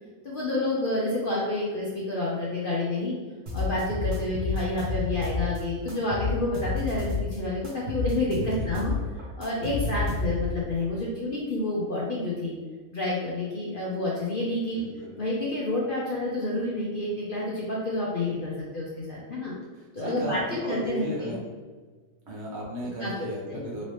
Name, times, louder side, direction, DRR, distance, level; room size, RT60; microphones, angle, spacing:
voice 1, 0.2-3.2 3.5-8.9 9.4-12.6 12.9-14.8 15.2-19.5 19.9-20.4 20.7-21.3 23.0-23.6, left 2 dB, 60° left, -5 dB, 0.5 m, -29 dB
sound 1, 3.5-5.6 5.9-7.4 7.6-10.6, left 3 dB, 70° right, 1.6 m, -30 dB
voice 2, 8.6-9.1 9.8-10.0 14.8-15.1 19.7-21.5 22.3-23.8, right 1 dB, 45° right, -5 dB, 1.3 m, -35 dB
4.0 x 2.7 x 3.1 m, 1.4 s
omnidirectional pair, 1.7 m